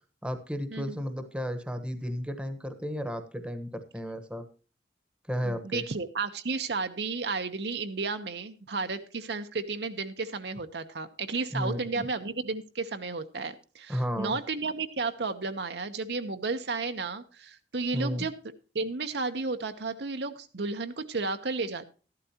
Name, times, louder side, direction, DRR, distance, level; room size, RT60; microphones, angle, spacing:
voice 1, 0.2-4.4 5.3-5.8 11.5-12.1 13.9-14.3 17.9-18.3, equal, 5° right, 8 dB, 1.1 m, -33 dB
voice 2, 5.4-18.3 18.7-21.8, right 4 dB, 65° right, 8 dB, 0.9 m, -33 dB
13.5 x 11.5 x 2.9 m, 0.36 s
head